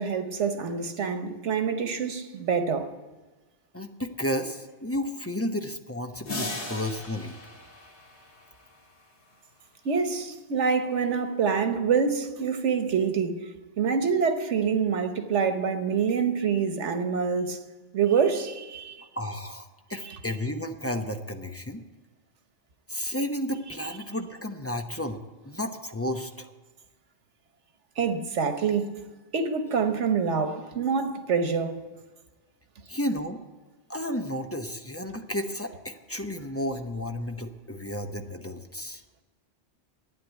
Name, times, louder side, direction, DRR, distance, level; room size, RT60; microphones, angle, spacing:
voice 1, 0.0-2.9 9.8-13.5 13.8-17.6 17.9-19.0 20.1-20.2 28.0-28.9 29.3-31.8, right 6 dB, 90° right, 1.4 m, -26 dB
voice 2, 3.7-7.4 19.2-21.8 22.9-26.5 32.9-33.4 33.9-39.0, left 1 dB, 15° left, 0.7 m, -32 dB
sound 1, 6.3-9.0, left 2 dB, 75° left, 2.1 m, -38 dB
12.0 x 9.5 x 9.1 m
omnidirectional pair, 1.2 m